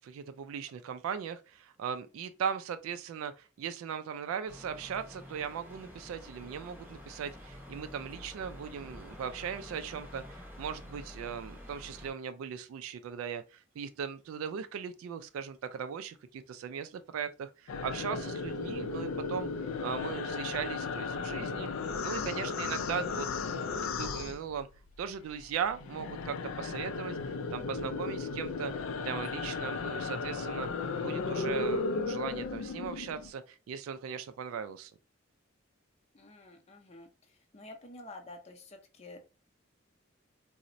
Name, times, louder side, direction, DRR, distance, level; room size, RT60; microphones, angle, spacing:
voice 1, 0.0-21.7 22.0-24.7 25.0-27.2 27.5-30.7 31.0-34.9, right 7 dB, 90° right, 0.3 m, -38 dB
sound 1, 4.5-12.1, equal, 10° right, 0.6 m, -48 dB
sound 2, 17.7-25.0 25.3-33.3, left 4 dB, 80° left, 0.3 m, -35 dB
voice 2, 36.1-37.1 37.5-39.2, left 2 dB, 30° left, 0.5 m, -49 dB
3.9 x 2.0 x 2.5 m
head